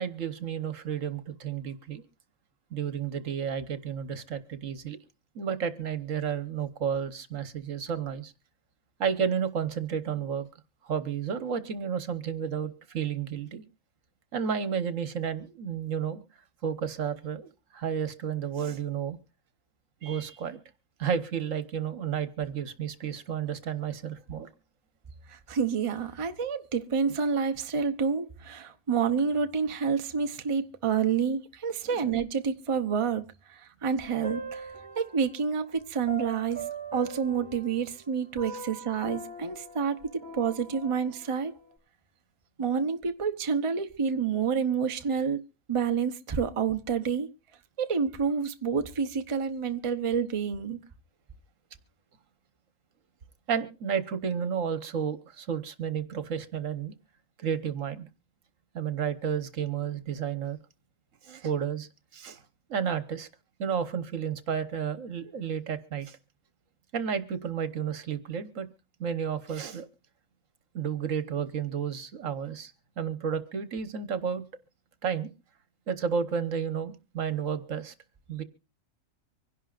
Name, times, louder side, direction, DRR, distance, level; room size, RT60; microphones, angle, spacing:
voice 1, 0.0-2.0 2.7-5.0 5.3-8.3 9.0-10.5 10.8-13.6 14.3-16.2 16.6-19.2 20.0-20.6 21.0-24.5 31.8-32.0 53.5-56.9 57.4-58.1 58.7-60.6 61.2-62.4 62.7-63.3 63.6-66.2 66.9-68.7 69.0-69.9 70.7-74.4 75.0-75.3 75.9-77.9 78.3-78.4, right 7 dB, 70° right, 1.5 m, -32 dB
voice 2, 25.3-36.6 36.9-41.5 42.6-45.4 45.7-47.3 47.8-50.8, right 6 dB, 30° right, 0.8 m, -29 dB
sound 1, 34.0-35.4 36.1-38.1 38.4-41.3, right 1 dB, 15° left, 6.4 m, -41 dB
25.0 x 11.0 x 2.5 m
omnidirectional pair, 1.4 m